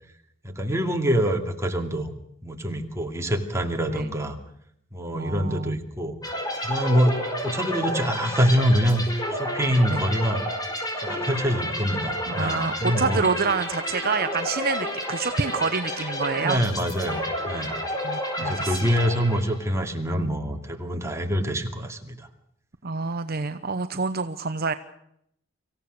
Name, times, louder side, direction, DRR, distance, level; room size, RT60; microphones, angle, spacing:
voice 1, 0.4-2.1 2.4-4.4 4.9-6.2 6.6-10.4 11.0-13.2 16.4-17.7 18.4-22.3, equal, 15° right, 3 dB, 2.6 m, -25 dB
voice 2, 5.1-5.8 9.9-10.0 12.3-16.6 18.0-18.9 22.8-24.7, right 4 dB, 50° right, 10 dB, 0.9 m, -27 dB
sound 1, 6.2-19.8, left 1 dB, 20° left, 5.0 m, -30 dB
25.5 x 16.0 x 6.6 m, 0.73 s
head